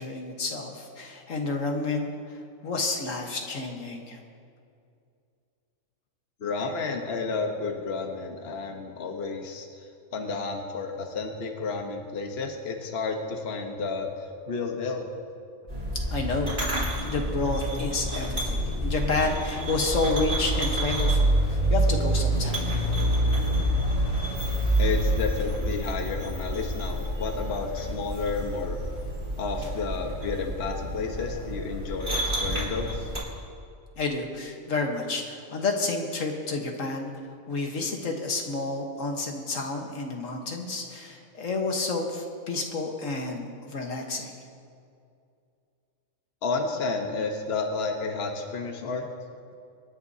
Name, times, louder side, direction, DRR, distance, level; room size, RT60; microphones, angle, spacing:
voice 1, 0.0-2.1 2.6-4.2 16.1-22.6 34.0-37.1 37.5-44.3, left 3 dB, 70° left, 2 dB, 1.7 m, -30 dB
voice 2, 6.4-9.7 10.1-15.1 24.8-28.8 29.4-33.1 46.4-49.0, left 4 dB, 50° left, 2 dB, 1.3 m, -31 dB
sound 1, 15.7-33.2, right 1 dB, 35° right, 3.9 m, -27 dB
27.0 x 10.5 x 2.8 m, 2.4 s
omnidirectional pair, 1.4 m